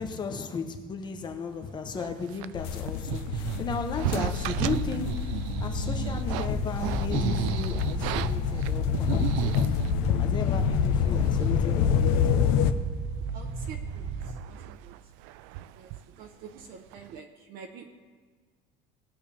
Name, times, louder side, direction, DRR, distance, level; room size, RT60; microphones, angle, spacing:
voice 1, 0.0-9.6 10.2-12.4, left 5 dB, 20° left, 5 dB, 1.0 m, -35 dB
sound 1, 1.9-10.0 10.7-10.8 11.0-11.6 11.9-12.0 12.5-12.8 13.1-16.7 16.9-17.2, right 14 dB, 80° right, 0.5 m, -34 dB
sound 2, 2.5-12.7, left 8 dB, 80° left, 0.9 m, -27 dB
sound 3, 5.5-14.4, right 5 dB, 25° right, 0.7 m, -36 dB
voice 2, 13.3-14.9 15.7-15.9 16.2-17.8, right 6 dB, 50° right, 3 dB, 1.0 m, -47 dB
19.5 x 7.9 x 3.5 m, 1.5 s
cardioid pair, 165°, 19 cm